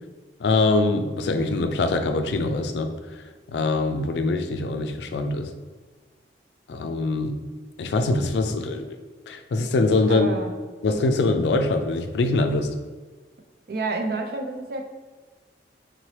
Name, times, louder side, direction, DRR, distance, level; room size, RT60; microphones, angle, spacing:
voice 1, 0.4-2.9 3.5-5.5 6.7-7.3 7.8-8.9 9.3-10.3 10.8-12.7, left 3 dB, 70° left, 7 dB, 0.4 m, -23 dB
voice 2, 10.1-10.6 13.7-14.9, right 3 dB, 55° right, 4 dB, 0.4 m, -29 dB
3.8 x 2.9 x 3.1 m, 1.4 s
head